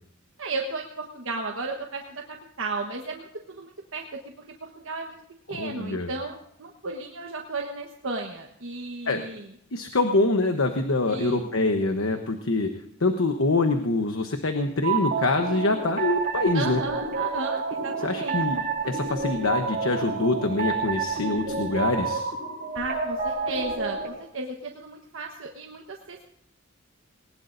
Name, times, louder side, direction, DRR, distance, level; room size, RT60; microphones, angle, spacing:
voice 1, 0.4-4.2 4.6-5.2 5.5-9.5 11.1-11.5 16.5-18.7 22.7-26.2, right 3 dB, 75° right, 1 dB, 1.3 m, -34 dB
voice 2, 5.5-6.1 9.1-9.3 9.7-12.7 13.0-16.8 18.0-18.6 18.8-22.3, left 2 dB, 80° left, 6 dB, 1.1 m, -25 dB
sound 1, 14.8-24.1, right 4 dB, 45° right, 5.4 m, -29 dB
20.0 x 19.5 x 2.7 m, 0.68 s
head